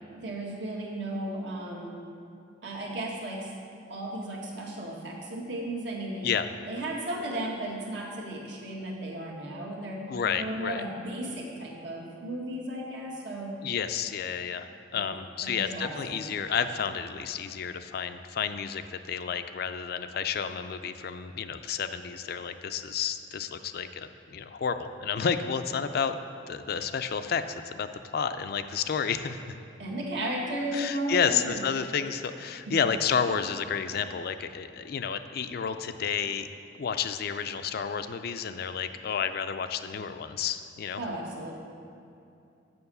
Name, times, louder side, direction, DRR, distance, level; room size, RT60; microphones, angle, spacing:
voice 1, 0.1-2.0 2.6-3.5 3.9-6.3 6.7-10.1 10.4-13.5 14.9-16.2 29.8-31.6 32.7-32.8 40.9-41.5, right 1 dB, 75° right, -2 dB, 1.5 m, -35 dB
voice 2, 10.1-10.8 13.6-26.2 26.5-27.9 28.1-29.6 30.7-36.5 36.7-41.0, left 7 dB, 55° left, 10 dB, 0.4 m, -31 dB
7.0 x 6.2 x 6.7 m, 2.6 s
head